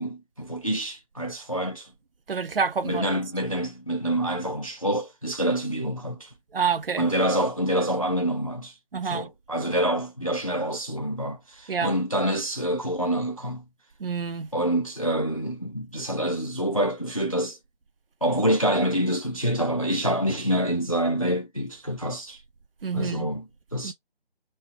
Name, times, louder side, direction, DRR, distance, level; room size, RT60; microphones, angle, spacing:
voice 1, 0.0-1.9 2.8-6.3 7.0-8.8 9.0-13.6 14.5-17.6 18.2-22.4 22.9-23.9, right 1 dB, 35° left, 0.5 m, -27 dB
voice 2, 2.3-3.1 6.5-7.0 8.9-9.3 11.7-12.0 14.0-14.5 22.8-23.3 23.8-23.9, right 6 dB, 65° right, 0.5 m, -28 dB
4.2 x 2.0 x 3.5 m
figure-of-eight pair, 175°, 31 cm